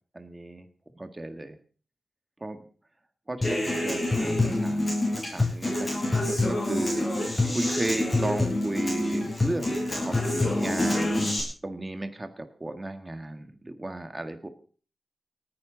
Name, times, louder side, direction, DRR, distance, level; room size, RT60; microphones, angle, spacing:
voice 1, 0.1-0.7 0.9-1.6 2.4-2.7 3.3-5.9 6.3-11.3 11.6-14.5, right 1 dB, 20° right, 7 dB, 1.7 m, -34 dB
Human voice / Acoustic guitar, 3.4-11.4, left 2 dB, 20° left, 6.0 m, -26 dB
29.0 x 10.0 x 3.9 m, 0.42 s
wide cardioid pair, 155°, 0 cm